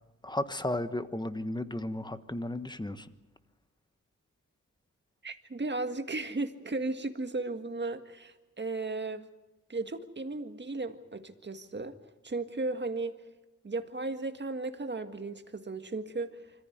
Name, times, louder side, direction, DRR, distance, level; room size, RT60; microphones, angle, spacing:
voice 1, 0.2-3.1, left 1 dB, 15° left, 11 dB, 1.2 m, -34 dB
voice 2, 5.2-9.3 9.7-11.9 12.2-13.2 13.6-16.3, right 3 dB, 35° right, 7 dB, 1.8 m, -35 dB
25.5 x 15.0 x 9.4 m, 1.1 s
wide cardioid pair, 80°, 31 cm